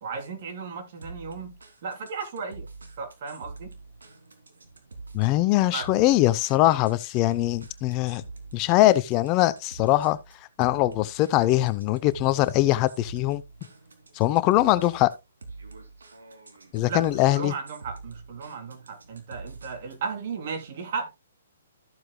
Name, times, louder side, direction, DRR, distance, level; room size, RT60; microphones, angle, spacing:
voice 1, 0.0-2.7 3.0-3.7 5.7-5.9 16.9-21.1, right 5 dB, 50° right, 3.2 m, -35 dB
sound 1, 1.0-20.1, right 3 dB, 85° right, 2.7 m, -45 dB
voice 2, 5.1-8.2 8.5-10.2 10.6-13.4 14.1-15.1 16.7-17.5, left 16 dB, 30° left, 0.6 m, -22 dB
13.5 x 7.7 x 2.2 m
hypercardioid pair, 140°, 0 cm